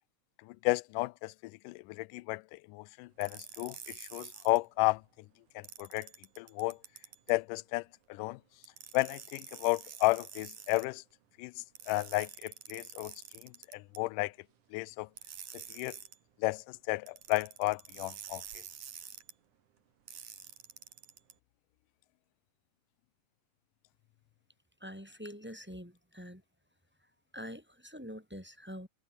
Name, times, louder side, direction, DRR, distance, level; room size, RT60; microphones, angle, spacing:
voice 1, 0.4-5.0 5.6-6.1 6.4-6.8 7.3-8.4 8.9-11.0 11.4-14.3 14.7-15.1 15.5-16.0 16.4-18.4, left 22 dB, 80° left, 2.1 m, -33 dB
sound 1, 3.2-4.6 5.6-7.3 8.6-10.9 11.8-14.0 15.2-16.2 17.1-19.3 20.1-21.3, right 9 dB, 65° right, 3.6 m, -48 dB
voice 2, 24.8-26.4 27.3-28.9, equal, 5° right, 4.8 m, -45 dB
omnidirectional pair, 3.8 m